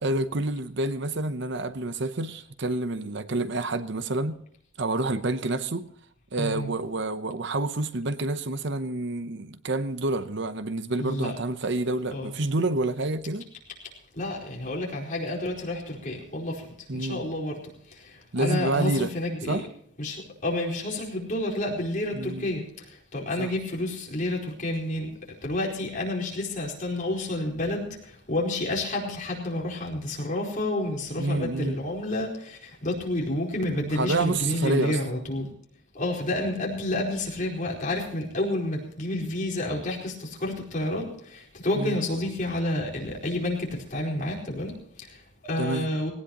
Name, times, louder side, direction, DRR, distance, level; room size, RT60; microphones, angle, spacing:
voice 1, 0.0-4.4 4.8-5.9 6.3-13.5 16.9-17.2 18.3-19.1 19.5-19.7 22.1-22.5 23.4-23.5 31.2-31.8 34.0-35.0 41.7-42.0 45.6-45.9, right 2 dB, 55° right, 0.8 m, -28 dB
voice 2, 6.4-6.7 11.0-11.4 11.8-12.3 14.1-17.6 17.9-19.6 20.0-25.1 25.4-35.5 35.9-46.1, left 1 dB, 40° left, 4.5 m, -30 dB
19.0 x 18.0 x 3.0 m
head